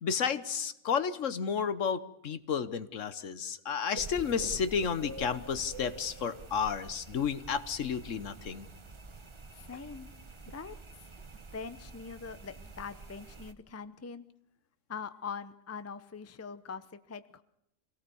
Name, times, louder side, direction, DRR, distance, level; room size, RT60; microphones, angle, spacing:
voice 1, 0.0-8.7, left 6 dB, 70° left, 13 dB, 1.4 m, -32 dB
sound 1, 3.9-13.5, right 3 dB, 25° right, 0.8 m, -47 dB
voice 2, 9.5-10.1 10.5-11.1 11.5-14.3 14.9-17.4, left 5 dB, 15° left, 13 dB, 0.6 m, -43 dB
24.5 x 17.5 x 7.0 m, 0.77 s
omnidirectional pair, 1.4 m